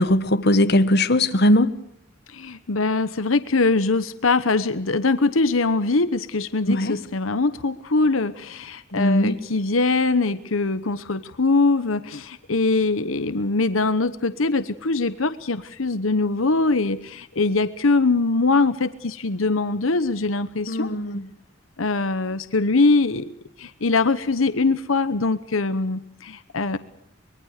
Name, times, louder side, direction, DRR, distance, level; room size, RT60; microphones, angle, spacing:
voice 1, 0.0-1.7 6.6-7.0 8.9-9.4 20.7-21.3, left 1 dB, 55° left, 1.4 m, -19 dB
voice 2, 2.3-20.9 21.8-23.3 23.6-26.8, left 3 dB, 85° left, 1.1 m, -22 dB
24.0 x 22.0 x 6.6 m
head